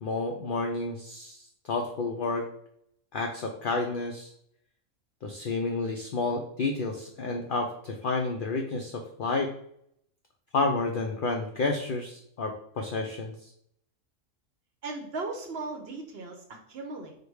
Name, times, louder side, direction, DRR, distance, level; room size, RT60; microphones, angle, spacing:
voice 1, 0.0-2.4 3.1-4.3 5.2-9.5 10.5-13.3, left 3 dB, 70° left, 2 dB, 0.5 m, -30 dB
voice 2, 14.8-16.4 16.7-17.2, right 3 dB, 55° right, 3 dB, 0.8 m, -37 dB
4.8 x 2.2 x 4.6 m, 0.70 s
omnidirectional pair, 1.4 m